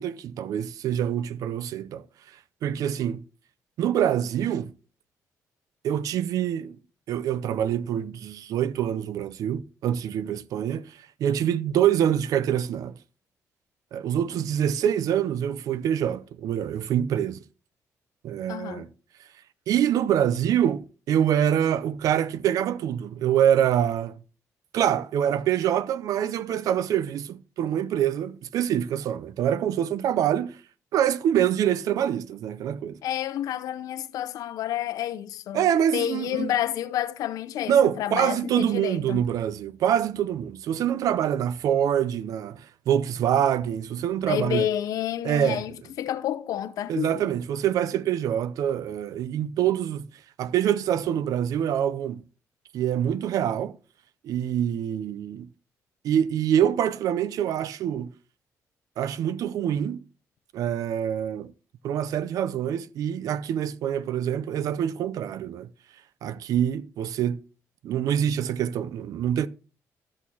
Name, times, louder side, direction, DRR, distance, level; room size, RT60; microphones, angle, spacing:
voice 1, 0.0-2.0 2.6-3.2 3.8-4.7 5.8-6.8 7.1-13.0 13.9-17.4 18.2-18.9 19.7-24.2 24.7-30.6 30.9-33.0 35.5-36.5 37.7-44.7 45.2-45.6 46.9-50.1 50.4-52.2 52.7-53.8 54.2-55.5 56.0-58.1 59.0-60.0 60.5-61.5 61.8-65.7 66.2-67.4 67.8-69.5, right 10 dB, 80° right, 0.5 m, -25 dB
voice 2, 18.5-18.8 33.0-35.7 35.9-39.2 44.3-47.2, left 11 dB, 85° left, 0.6 m, -29 dB
13.0 x 6.3 x 2.8 m
cardioid pair, 120°, 6 cm